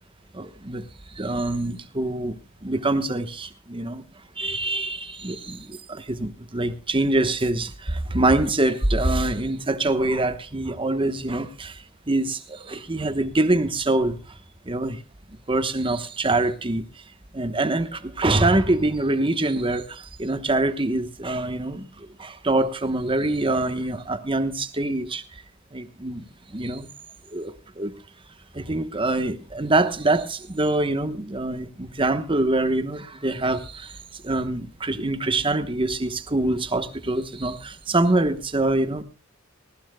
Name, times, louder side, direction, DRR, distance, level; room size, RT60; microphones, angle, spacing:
voice 1, 0.3-0.8 1.1-2.4 2.6-4.0 4.4-14.2 14.6-15.0 15.5-16.8 17.3-25.2 25.7-26.3 26.5-26.9 27.3-27.9 28.5-34.0 34.2-39.0, right 2 dB, 25° right, 1.1 m, -24 dB
19.0 x 19.0 x 2.2 m
head